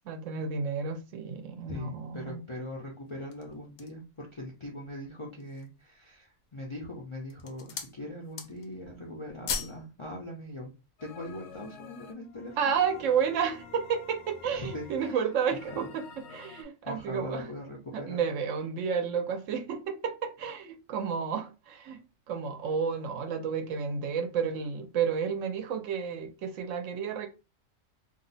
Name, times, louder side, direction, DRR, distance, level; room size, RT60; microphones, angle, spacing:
voice 1, 0.1-2.4 12.6-17.5 17.9-22.0 22.3-27.3, right 6 dB, 70° right, 0.9 m, -31 dB
voice 2, 1.7-10.7 11.0-12.7 14.5-15.2 15.7-15.9 16.8-18.2, left 1 dB, 45° left, 0.4 m, -41 dB
sound 1, 3.1-4.1 4.7-4.8 5.2-5.8 6.5-6.9 7.2-8.0 8.2-8.8 9.1-9.8 10.1-10.3, left 6 dB, 90° left, 1.0 m, -38 dB
sound 2, 11.0-16.6, left 5 dB, 65° left, 0.9 m, -50 dB
2.6 x 2.0 x 3.9 m
omnidirectional pair, 1.4 m